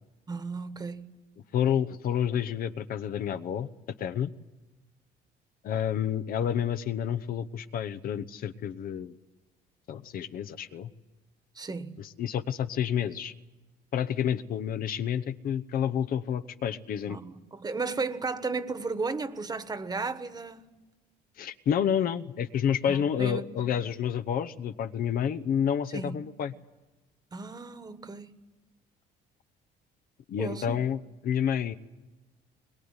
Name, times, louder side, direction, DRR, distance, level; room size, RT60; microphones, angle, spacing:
voice 1, 0.3-1.1 11.6-12.0 17.1-20.7 22.9-23.6 25.9-26.2 27.3-28.3 30.4-30.8, right 4 dB, 25° right, 1.4 m, -34 dB
voice 2, 1.5-3.7 4.0-4.3 5.6-9.1 9.9-10.9 12.0-13.3 13.9-17.2 21.4-26.5 30.3-31.7, left 9 dB, 60° left, 0.9 m, -29 dB
22.0 x 21.0 x 9.7 m
cardioid pair, 110°, 17 cm